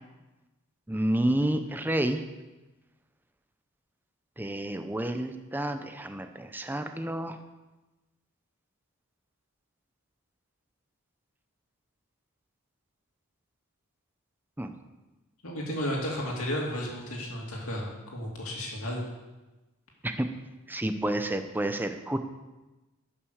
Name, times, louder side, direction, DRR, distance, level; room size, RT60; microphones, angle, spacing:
voice 1, 0.9-2.2 4.4-7.4 14.6-14.7 20.0-20.3 20.7-22.2, right 1 dB, 10° right, 7 dB, 0.6 m, -29 dB
voice 2, 15.4-19.0, equal, 70° left, -1 dB, 2.6 m, -33 dB
11.0 x 6.1 x 6.5 m, 1.1 s
head